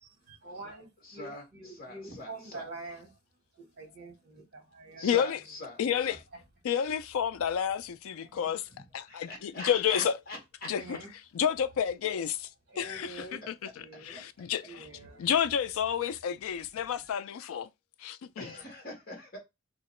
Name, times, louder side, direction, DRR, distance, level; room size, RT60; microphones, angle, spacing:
voice 1, 0.0-3.1 3.6-5.1 8.2-8.5 9.6-9.7 10.8-11.1 12.7-13.4 13.7-14.3 14.6-15.3, right 3 dB, 50° right, 1.6 m, -46 dB
voice 2, 1.0-2.7 5.0-6.2 8.7-10.7 18.4-19.4, left 2 dB, 45° left, 1.5 m, -44 dB
voice 3, 5.0-5.4 5.8-6.2 6.6-10.2 10.7-11.0 11.3-12.5 12.8-14.9 15.2-17.7 18.0-18.5, left 8 dB, 75° left, 0.4 m, -30 dB
3.0 x 2.8 x 4.2 m
head